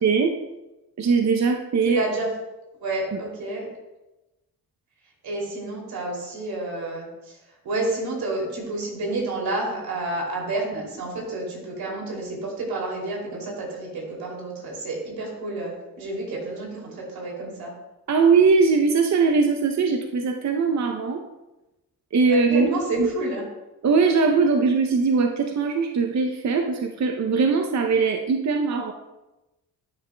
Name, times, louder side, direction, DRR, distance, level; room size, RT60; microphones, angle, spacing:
voice 1, 0.0-0.3 1.0-2.0 3.1-3.2 18.1-21.2 22.1-22.7 23.0-23.1 23.8-28.9, right 4 dB, 50° right, 4 dB, 0.7 m, -20 dB
voice 2, 1.8-2.3 2.8-3.7 5.2-7.4 7.6-17.7 22.3-23.4, right 2 dB, 85° right, -2 dB, 2.9 m, -30 dB
12.0 x 6.6 x 2.2 m, 1.0 s
cardioid pair, 70°, 36 cm